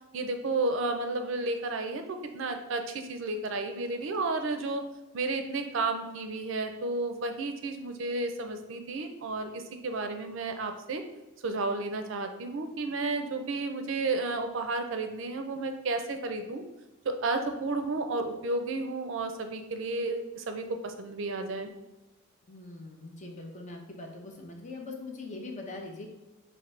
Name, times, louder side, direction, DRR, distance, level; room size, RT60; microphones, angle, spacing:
voice 1, 0.1-4.8 5.1-11.0 11.4-16.6 17.0-21.7, right 3 dB, 65° right, 6 dB, 0.4 m, -32 dB
voice 2, 22.5-26.1, left 2 dB, 35° left, 2 dB, 0.6 m, -42 dB
5.1 x 2.6 x 3.2 m, 1.0 s
head